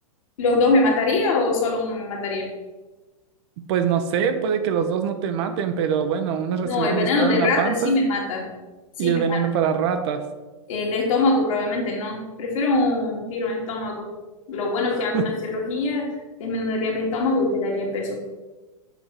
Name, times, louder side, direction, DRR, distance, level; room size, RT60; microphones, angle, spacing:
voice 1, 0.4-2.5 6.6-8.5 9.0-9.4 10.7-14.1 14.5-16.1 16.4-18.2, left 2 dB, 65° left, -1 dB, 1.8 m, -23 dB
voice 2, 3.6-7.9 9.0-10.2 14.9-15.3, right 7 dB, 50° right, 8 dB, 0.7 m, -24 dB
6.9 x 3.6 x 4.6 m, 1.2 s
hypercardioid pair, 115°, 18 cm